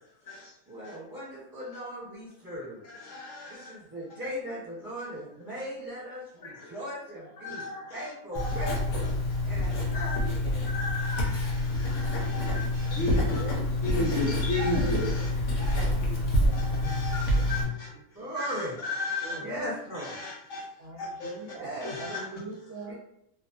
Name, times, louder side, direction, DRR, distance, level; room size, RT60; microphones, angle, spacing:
voice 1, 0.7-2.8 3.5-7.6 7.9-9.0 9.4-10.7 18.1-18.8 19.4-20.2 21.4-22.1 22.9-23.0, equal, 15° right, -9 dB, 1.1 m, -38 dB
voice 2, 3.0-3.6 6.4-6.7 7.4-7.8 8.3-8.8 9.9-10.2 10.7-13.5 13.8-15.3 15.6-15.9 16.5-17.9 18.4-18.5 18.8-19.4 20.0-20.6 21.0-21.3 21.8-22.2, left 2 dB, 65° left, -4 dB, 0.8 m, -34 dB
Writing, 8.3-17.6, left 1 dB, 85° left, 1.1 m, -27 dB
voice 3, 12.8-13.7 14.6-14.7 15.1-15.3 15.6-16.6 17.3-18.0 19.2-19.5 20.8-22.9, right 3 dB, 60° right, -5 dB, 0.9 m, -44 dB
2.5 x 2.3 x 2.4 m, 0.77 s
omnidirectional pair, 1.5 m